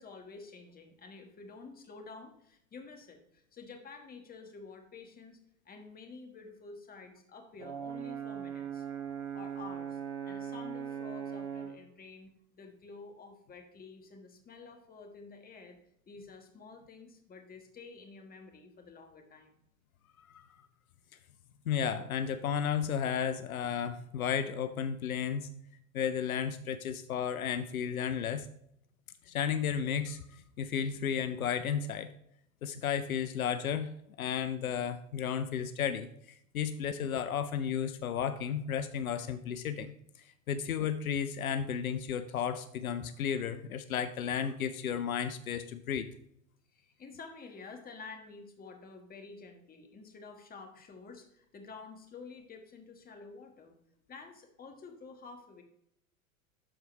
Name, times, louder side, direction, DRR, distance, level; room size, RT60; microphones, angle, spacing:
voice 1, 0.0-5.4 5.6-8.8 9.3-15.8 16.1-19.6 46.7-53.7 54.1-55.6, left 4 dB, 20° left, 4 dB, 1.5 m, -50 dB
Brass instrument, 7.6-11.8, right 8 dB, 55° right, 1.6 m, -39 dB
voice 2, 21.7-25.5 25.9-28.5 29.3-32.1 32.6-36.1 36.5-39.9 40.5-46.1, left 8 dB, 80° left, 11 dB, 0.7 m, -33 dB
12.5 x 4.6 x 3.2 m, 0.74 s
hypercardioid pair, 95°, 42 cm